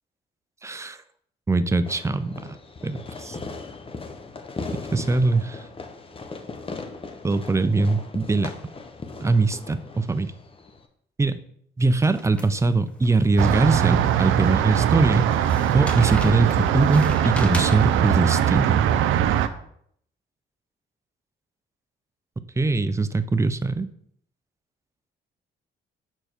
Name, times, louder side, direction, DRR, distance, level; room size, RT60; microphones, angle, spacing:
voice 1, 0.6-1.0 1.5-2.4 2.8-3.4 4.9-5.6 7.2-8.5 9.2-10.3 11.2-11.4 11.8-15.5 15.7-18.8 22.6-23.9, right 3 dB, 15° right, 12 dB, 0.5 m, -22 dB
Fireworks, 1.8-10.9, left 3 dB, 30° left, 0.8 m, -38 dB
sound 1, 12.0-14.0 14.4-14.5 15.3-18.2, equal, 5° left, 1.2 m, -38 dB
sound 2, 13.4-19.5, right 10 dB, 85° right, 0.5 m, -21 dB
6.6 x 4.5 x 4.4 m, 0.67 s
cardioid pair, 90°, 20 cm